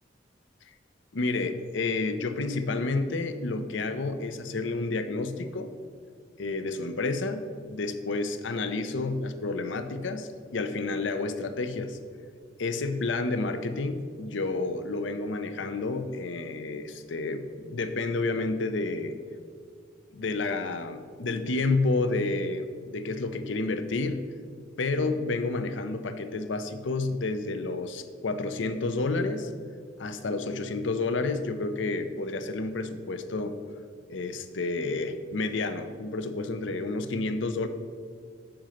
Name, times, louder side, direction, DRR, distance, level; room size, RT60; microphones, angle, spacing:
voice 1, 1.1-5.7 6.4-12.0 12.6-19.2 20.1-24.2 24.8-29.5 30.0-33.6 34.1-37.7, left 3 dB, 75° left, 9 dB, 0.6 m, -30 dB
7.7 x 5.2 x 5.7 m, 2.1 s
head